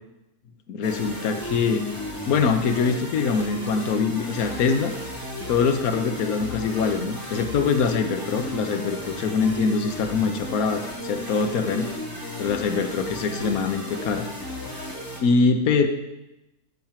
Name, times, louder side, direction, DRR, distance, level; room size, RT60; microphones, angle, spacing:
voice 1, 0.7-1.8 2.2-4.9 5.5-11.9 12.4-14.3 15.2-15.9, left 5 dB, 65° left, 6 dB, 1.4 m, -23 dB
sound 1, 0.8-15.2, left 1 dB, 15° left, 1.8 m, -34 dB
13.5 x 4.5 x 7.4 m, 0.93 s
omnidirectional pair, 1.7 m